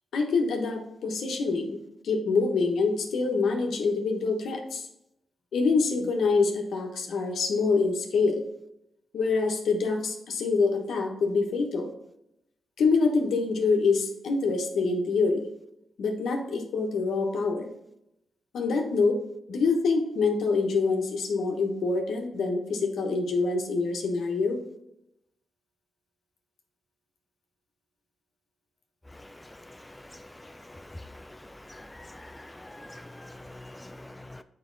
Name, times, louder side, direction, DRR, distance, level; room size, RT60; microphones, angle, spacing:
voice 1, 0.1-4.9 5.5-8.4 9.1-11.9 12.8-15.5 16.0-17.7 18.5-19.2 19.5-24.6, left 4 dB, 75° left, 3 dB, 1.2 m, -26 dB
voice 2, 31.7-34.4, left 1 dB, 15° left, 10 dB, 0.4 m, -45 dB
7.2 x 5.0 x 3.9 m, 0.82 s
supercardioid pair, 45°, 0 cm